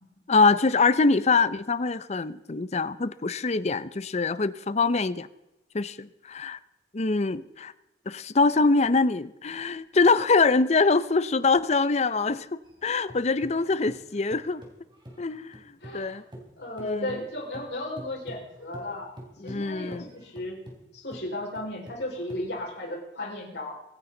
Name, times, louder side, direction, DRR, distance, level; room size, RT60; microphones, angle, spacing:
voice 1, 0.3-5.3 5.7-6.6 6.9-7.7 8.1-14.6 15.2-15.6 15.9-16.2 16.8-17.1 19.4-20.1, left 4 dB, 40° left, 0.6 m, -24 dB
sound 1, 12.6-16.1 16.3-23.0, equal, 25° right, 3.4 m, -47 dB
voice 2, 15.8-16.2 16.6-19.2 19.4-20.6 20.9-23.8, left 1 dB, 70° left, 5.1 m, -35 dB
24.5 x 10.5 x 3.9 m
head